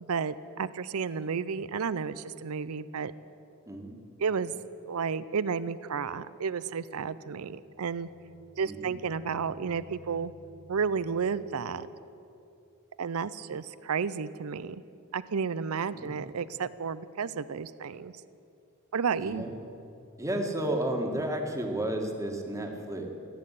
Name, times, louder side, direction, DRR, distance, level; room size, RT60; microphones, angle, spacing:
voice 1, 0.0-3.1 4.2-4.5 4.9-8.1 8.6-10.3 10.7-11.9 13.0-14.8 15.1-18.1 18.9-19.5, right 6 dB, 70° right, 16 dB, 0.5 m, -32 dB
voice 2, 3.7-4.0 8.7-9.0 15.9-16.1 19.2-19.5 20.2-23.1, right 1 dB, 15° right, 2 dB, 1.7 m, -32 dB
sound 1, 7.5-12.1, left 1 dB, 50° left, 1.2 m, -55 dB
15.0 x 8.8 x 10.0 m, 2.6 s
head